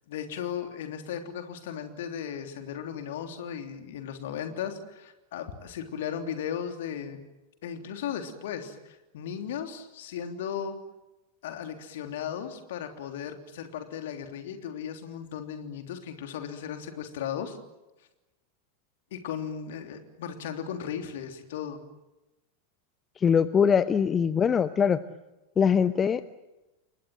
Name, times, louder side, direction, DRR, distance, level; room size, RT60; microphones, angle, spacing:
voice 1, 0.1-7.2 7.6-10.8 11.4-17.6 19.1-21.8, left 8 dB, 55° left, 6 dB, 3.3 m, -36 dB
voice 2, 23.2-25.0 25.6-26.2, left 7 dB, 20° left, 14 dB, 0.9 m, -22 dB
29.5 x 24.0 x 7.8 m, 1.0 s
figure-of-eight pair, 90°, 0 cm